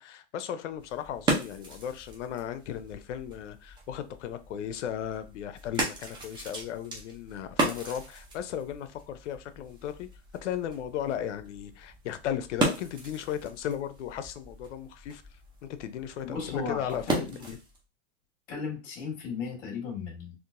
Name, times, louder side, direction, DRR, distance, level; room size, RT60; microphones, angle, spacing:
voice 1, 0.0-10.1 10.3-17.6, left 9 dB, 75° left, 0.6 m, -36 dB
sound 1, 0.7-17.8, right 2 dB, 15° right, 0.6 m, -36 dB
voice 2, 16.2-17.3 18.5-20.3, left 5 dB, 50° left, 1.5 m, -35 dB
3.7 x 2.5 x 2.5 m
supercardioid pair, 145°, 36 cm